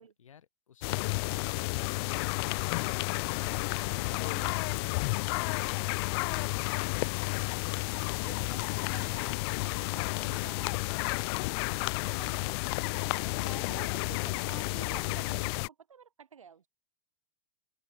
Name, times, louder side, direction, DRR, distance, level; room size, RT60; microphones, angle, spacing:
voice 1, 0.2-3.1, left 8 dB, 80° left, 7.6 m, -59 dB
sound 1, 0.8-15.7, left 28 dB, 50° left, 0.5 m, -31 dB
sound 2, 1.3-10.5, right 6 dB, 20° right, 4.6 m, -60 dB
voice 2, 3.9-5.2 8.2-9.4 9.7-11.0 12.1-12.7 13.4-16.7, right 7 dB, 85° right, 3.3 m, -50 dB
hypercardioid pair, 105°, 16 cm